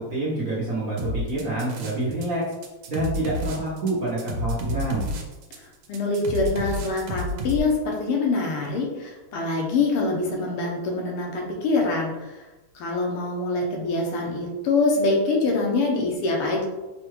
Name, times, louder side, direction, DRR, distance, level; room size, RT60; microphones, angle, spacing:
voice 1, 0.0-2.4 2.9-5.1, right 2 dB, 60° right, -8 dB, 0.9 m, -27 dB
sound 1, 1.0-2.3 2.5-7.6, equal, 80° right, 1.4 m, -30 dB
voice 2, 5.9-12.4 12.8-16.6, left 3 dB, 85° left, 0 dB, 1.8 m, -24 dB
5.4 x 2.3 x 3.1 m, 1.1 s
omnidirectional pair, 2.4 m